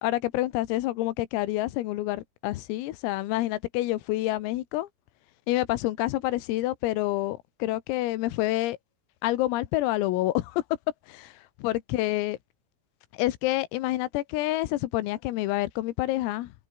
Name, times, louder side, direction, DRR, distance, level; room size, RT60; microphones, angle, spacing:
voice 1, 0.0-4.9 5.5-8.8 9.2-10.6 11.1-11.3 11.6-12.4 13.1-16.5, left 16 dB, 85° left, 3.9 m, -28 dB
omnidirectional pair, 6.0 m